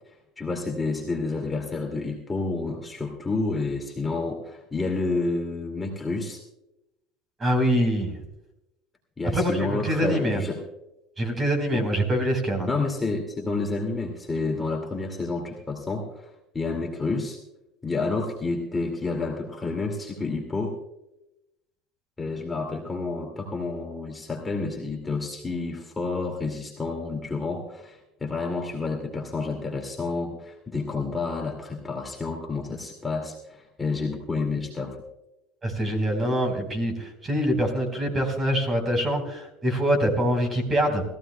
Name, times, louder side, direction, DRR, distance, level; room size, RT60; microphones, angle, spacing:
voice 1, 0.4-6.4 9.2-10.6 11.7-11.8 12.7-16.3 16.5-17.4 17.8-20.8 22.2-35.0, left 3 dB, 15° left, 1 dB, 2.2 m, -29 dB
voice 2, 7.4-8.1 9.3-10.4 11.2-12.7 35.6-41.0, equal, 20° right, 5 dB, 4.1 m, -24 dB
21.0 x 15.5 x 2.2 m, 0.89 s
cardioid pair, 130°, 0 cm